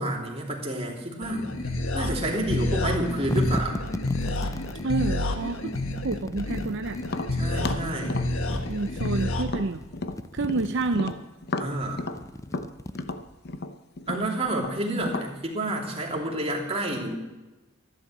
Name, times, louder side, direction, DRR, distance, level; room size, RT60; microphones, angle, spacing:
voice 1, 0.0-1.5 1.9-3.8 7.4-8.2 11.6-12.0 14.1-17.2, right 1 dB, 30° right, -1 dB, 3.1 m, -29 dB
sound 1, 1.2-9.4, left 1 dB, 80° left, 1.5 m, -29 dB
sound 2, 3.2-4.9 5.7-7.3 8.2-9.3 9.6-11.1 11.7-13.5, left 1 dB, 15° left, 0.5 m, -38 dB
voice 2, 4.8-5.7 6.0-7.0 8.7-9.8 10.3-11.2 14.9-15.1, right 3 dB, 60° right, 8 dB, 0.6 m, -28 dB
Tap, 7.0-10.6 10.9-15.3, left 2 dB, 50° left, 0.8 m, -33 dB
13.5 x 11.5 x 7.5 m, 1.1 s
head